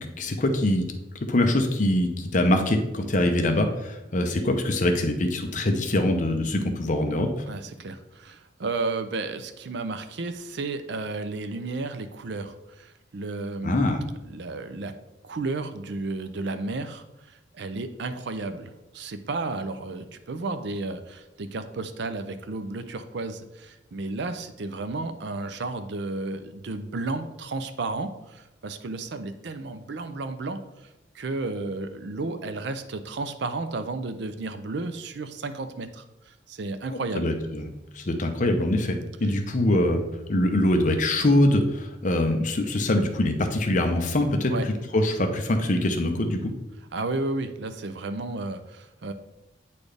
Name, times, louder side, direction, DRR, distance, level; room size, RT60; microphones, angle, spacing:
voice 1, 0.2-0.8 1.3-7.3 13.6-14.0 36.9-37.7 37.9-40.0 40.3-46.5, left 1 dB, 40° left, 5 dB, 0.7 m, -23 dB
voice 2, 7.5-13.9 14.2-14.9 15.2-30.6 31.1-37.3 39.2-39.3 44.5-44.7 46.9-49.1, right 3 dB, 60° right, 10 dB, 0.5 m, -33 dB
8.4 x 4.2 x 3.3 m, 1.0 s
head